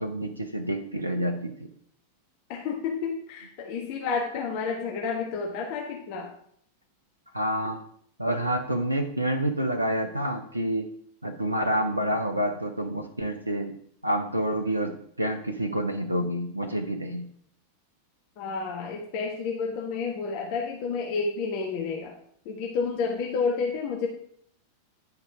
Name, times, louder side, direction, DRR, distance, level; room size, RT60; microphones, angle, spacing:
voice 1, 0.0-1.5 7.3-7.8 8.2-10.9 11.2-13.7 14.0-17.3, right 1 dB, 85° right, 6 dB, 0.7 m, -28 dB
voice 2, 2.5-6.3 18.4-22.1 22.4-24.1, left 5 dB, 45° left, 0 dB, 1.4 m, -30 dB
10.5 x 4.9 x 4.8 m, 0.64 s
figure-of-eight pair, 90°, 0 cm